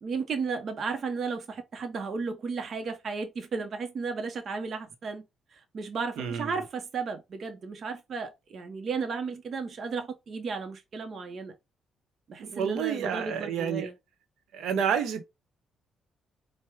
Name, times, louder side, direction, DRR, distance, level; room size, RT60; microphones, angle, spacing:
voice 1, 0.0-5.2 5.5-11.5 12.3-13.9, right 4 dB, 50° right, 0.7 m, -34 dB
voice 2, 6.2-6.6 12.4-13.9 14.5-15.2, right 7 dB, 80° right, 0.9 m, -29 dB
4.5 x 2.1 x 3.5 m
cardioid pair, 90°, 0 cm